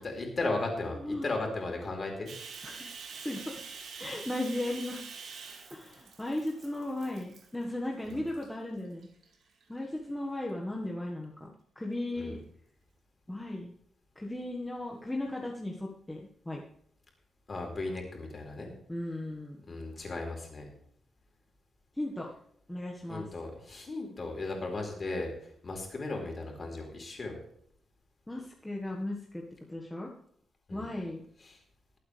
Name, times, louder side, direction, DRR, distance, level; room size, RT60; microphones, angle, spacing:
voice 1, 0.2-2.3 8.1-8.2 12.2-12.3 17.5-18.7 19.7-20.7 23.1-25.3 25.6-27.4 30.7-30.9 31.5-31.6, left 2 dB, 35° left, 1 dB, 4.2 m, -36 dB
voice 2, 0.9-1.2 2.6-3.5 4.0-5.0 5.7-9.1 9.7-12.4 13.3-13.7 14.1-16.6 18.9-19.6 21.9-22.3 22.7-23.3 28.3-29.4 29.7-30.1 30.7-31.2, left 1 dB, 10° left, -2 dB, 1.7 m, -36 dB
Bathtub (filling or washing), 2.3-7.6 8.1-8.5 9.0-9.8, right 5 dB, 70° right, 2.6 m, -46 dB
21.5 x 8.5 x 3.4 m, 0.67 s
cardioid pair, 110°, 0 cm